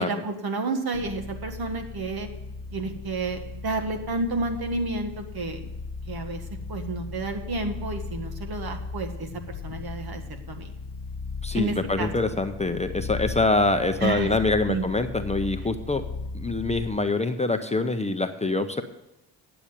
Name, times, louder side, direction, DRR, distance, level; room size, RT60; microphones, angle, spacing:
voice 1, 0.0-2.3 2.7-5.6 6.1-6.4 6.7-10.7 11.5-12.1 14.0-14.3 14.7-14.9, right 3 dB, 55° right, 6 dB, 1.8 m, -30 dB
sound 1, 0.9-17.1, left 4 dB, 60° left, 0.9 m, -37 dB
voice 2, 11.4-16.0 16.3-18.8, left 2 dB, 15° left, 7 dB, 0.8 m, -25 dB
9.9 x 7.0 x 7.6 m, 0.95 s
cardioid pair, 70°, 44 cm